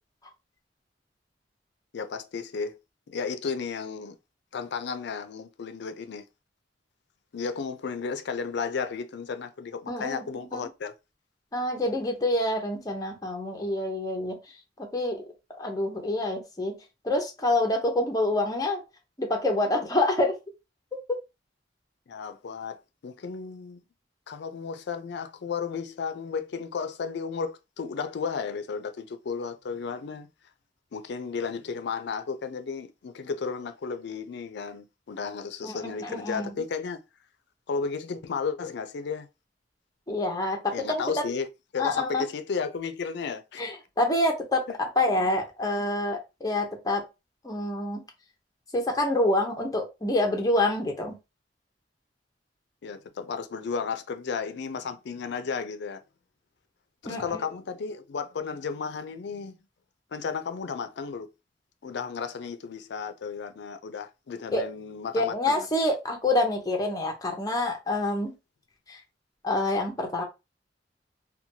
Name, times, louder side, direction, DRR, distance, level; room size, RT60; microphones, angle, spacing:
voice 1, 1.9-2.7 3.1-4.2 4.5-6.2 7.3-10.9 22.1-23.8 24.3-30.3 30.9-37.0 37.7-39.3 40.7-41.5 41.7-43.6 44.7-44.8 45.1-45.2 52.8-56.0 57.0-59.6 60.1-61.3 61.8-65.7, left 5 dB, 65° left, 0.4 m, -33 dB
voice 2, 9.9-10.7 11.5-14.4 14.8-15.2 15.6-16.8 17.0-18.8 19.2-20.4 21.1-21.2 35.6-36.5 40.1-41.0 41.8-42.2 43.6-47.0 47.4-48.0 48.7-51.2 57.0-57.4 64.5-64.7 65.1-68.3 68.9-69.0 69.4-70.2, left 1 dB, 20° left, 0.7 m, -27 dB
2.9 x 2.2 x 2.7 m
head